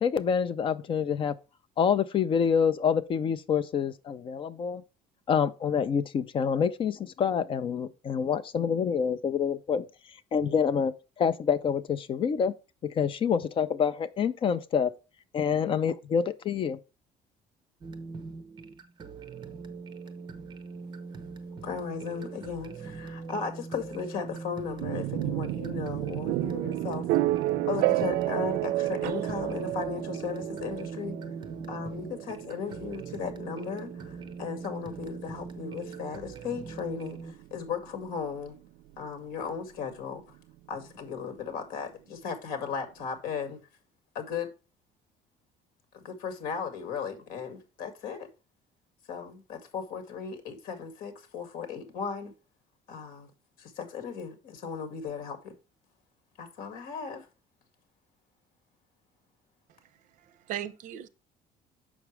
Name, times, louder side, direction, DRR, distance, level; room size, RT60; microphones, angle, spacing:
voice 1, 0.0-1.3 1.8-4.8 5.3-9.9 10.3-12.5 12.8-14.9 15.3-16.8, left 7 dB, 35° left, 0.6 m, -27 dB
sound 1, 17.8-37.3, right 4 dB, 30° right, 0.9 m, -42 dB
voice 2, 21.6-27.1 27.7-31.2 31.7-38.6 39.0-40.4 40.7-43.6 44.1-44.5 45.9-48.3 49.1-52.3 52.9-53.3 53.6-55.5 56.4-57.3, left 6 dB, 65° left, 2.2 m, -36 dB
sound 2, 24.8-38.6, right 17 dB, 90° right, 0.4 m, -32 dB
voice 3, 59.7-61.1, right 11 dB, 55° right, 0.8 m, -39 dB
7.2 x 6.0 x 3.2 m
cardioid pair, 165°, 15 cm